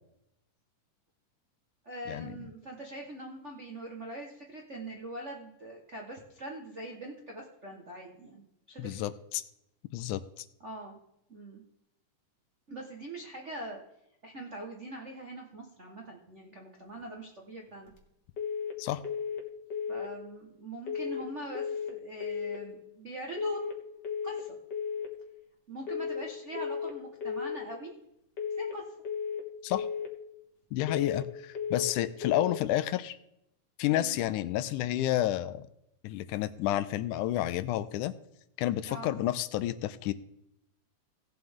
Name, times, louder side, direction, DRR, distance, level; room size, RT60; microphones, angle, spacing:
voice 1, 1.8-9.0 10.6-11.0 11.3-11.6 12.7-13.8 14.2-17.9 19.9-23.6 24.2-24.6 25.7-27.9 28.6-28.8 33.9-34.2 38.8-39.1, right 1 dB, 90° right, 0 dB, 0.6 m, -42 dB
voice 2, 8.8-9.4 9.9-10.5 18.8-19.0 29.6-29.9 30.7-33.2 33.8-35.7 36.0-38.2 38.6-40.1, left 13 dB, 80° left, 14 dB, 1.9 m, -30 dB
sound 1, 18.4-18.8 19.0-19.4 19.7-20.1 20.9-21.3 21.5-21.9 22.2-22.6 23.4-23.8 24.0-24.4 24.7-25.1 25.9-26.3 26.5-26.9 27.2-27.6 28.4-28.8 29.1-29.4 29.7-30.1 30.9-31.3 31.6-32.0 32.2-32.6, left 6 dB, 50° left, 1.4 m, -34 dB
17.0 x 7.8 x 3.6 m, 0.81 s
omnidirectional pair, 3.7 m